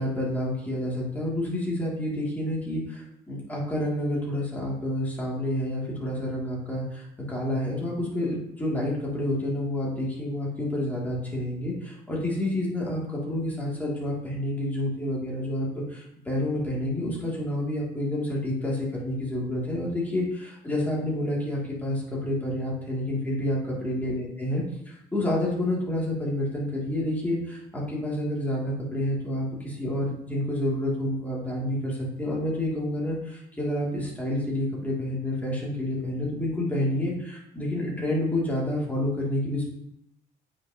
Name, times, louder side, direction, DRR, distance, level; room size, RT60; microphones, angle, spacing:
voice 1, 0.0-39.6, left 1 dB, 10° left, -5 dB, 2.6 m, -29 dB
8.7 x 5.8 x 2.9 m, 0.80 s
cardioid pair, 110°, 17 cm